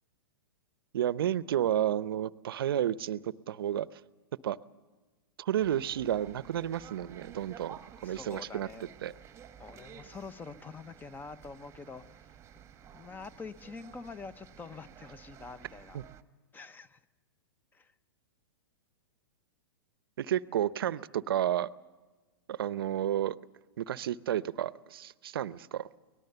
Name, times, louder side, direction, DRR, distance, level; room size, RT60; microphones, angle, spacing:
voice 1, 0.9-3.9 4.4-4.6 5.4-8.7 9.0-9.1 15.9-16.0 20.2-21.7 22.5-23.4 23.8-25.9, right 11 dB, 70° right, 18 dB, 0.7 m, -31 dB
sound 1, 5.6-16.2, right 9 dB, 20° right, 1.2 m, -52 dB
voice 2, 8.0-8.9 9.6-12.3 12.8-16.0 16.5-17.0 17.7-17.9, left 4 dB, 15° left, 15 dB, 0.9 m, -46 dB
24.5 x 19.0 x 6.8 m, 1.3 s
hypercardioid pair, 115°, 13 cm